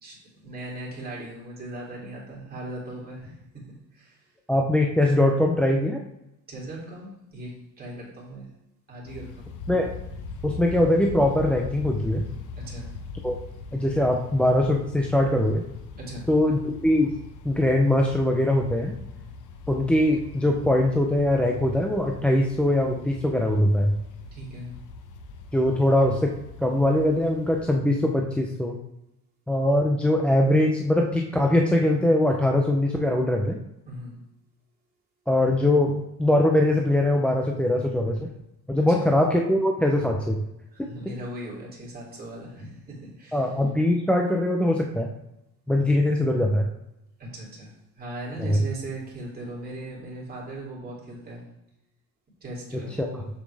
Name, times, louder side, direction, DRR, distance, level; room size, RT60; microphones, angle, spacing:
voice 1, 0.0-4.3 6.5-8.5 8.9-9.5 12.6-12.9 16.0-16.3 24.3-24.8 33.9-34.2 38.9-39.0 40.7-43.5 47.2-51.4 52.4-53.3, right 1 dB, 25° right, -4 dB, 3.1 m, -39 dB
voice 2, 4.5-6.0 9.7-9.9 10.4-12.2 13.2-13.4 13.7-15.6 16.3-17.1 17.4-19.0 19.7-23.9 25.5-26.3 26.6-28.8 29.5-33.6 35.3-38.3 38.7-40.4 43.3-45.1 45.7-46.6 48.4-48.6 53.0-53.1, left 1 dB, 5° left, 1 dB, 0.5 m, -22 dB
sound 1, 9.1-27.8, left 4 dB, 50° left, 1.0 m, -41 dB
7.4 x 6.9 x 3.4 m, 0.87 s
cardioid pair, 130°, 38 cm